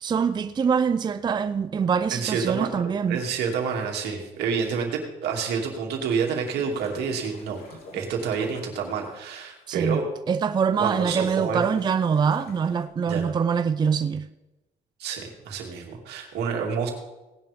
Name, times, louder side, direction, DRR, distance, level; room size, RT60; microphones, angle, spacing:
voice 1, 0.0-3.2 9.7-10.0 10.3-14.3, right 6 dB, 25° right, 0.5 m, -24 dB
voice 2, 2.1-2.7 3.1-10.0 10.8-11.6 13.0-13.4 15.0-16.9, right 6 dB, 75° right, 2.6 m, -28 dB
sound 1, 6.4-9.3 9.8-9.9 10.7-12.9, left 3 dB, 65° left, 3.0 m, -45 dB
18.0 x 10.5 x 3.6 m
cardioid pair, 110°, 17 cm